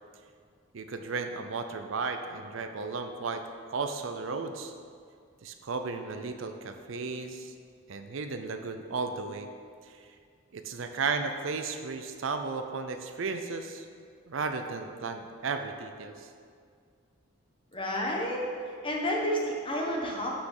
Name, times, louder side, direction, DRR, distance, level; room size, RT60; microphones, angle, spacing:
voice 1, 0.7-3.4 3.7-4.7 5.4-7.5 7.9-9.5 9.9-10.0 10.5-13.9 14.3-16.3, right 4 dB, 70° right, 7 dB, 0.6 m, -34 dB
voice 2, 17.7-20.3, equal, 25° left, -1 dB, 1.2 m, -31 dB
6.0 x 5.9 x 6.7 m, 2.1 s
head